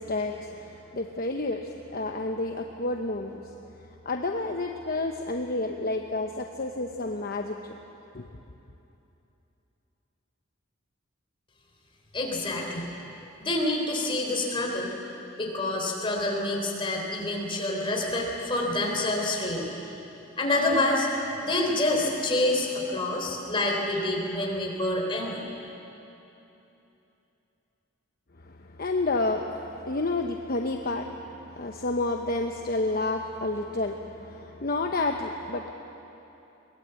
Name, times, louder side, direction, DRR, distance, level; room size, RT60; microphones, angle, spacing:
voice 1, 0.0-3.5 4.0-7.8 8.1-8.3 28.5-35.7, left 2 dB, 45° left, 3 dB, 0.9 m, -30 dB
voice 2, 12.1-12.9 13.4-14.9 15.4-19.7 20.4-21.1 21.4-25.4, left 2 dB, 25° left, -1 dB, 3.9 m, -27 dB
22.5 x 20.0 x 8.3 m, 3.0 s
head